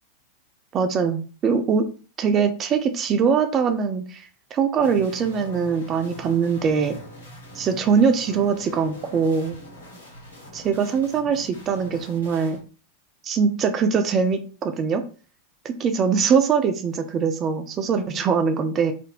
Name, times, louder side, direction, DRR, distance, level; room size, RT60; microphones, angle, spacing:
voice 1, 0.7-1.9 2.2-7.0 7.6-9.6 10.5-12.6 13.2-15.0 15.6-18.9, right 6 dB, 30° right, 7 dB, 0.5 m, -22 dB
sound 1, 4.8-12.6, left 1 dB, 70° left, 1.3 m, -43 dB
4.0 x 2.7 x 3.1 m, 0.37 s
figure-of-eight pair, 90°, 0 cm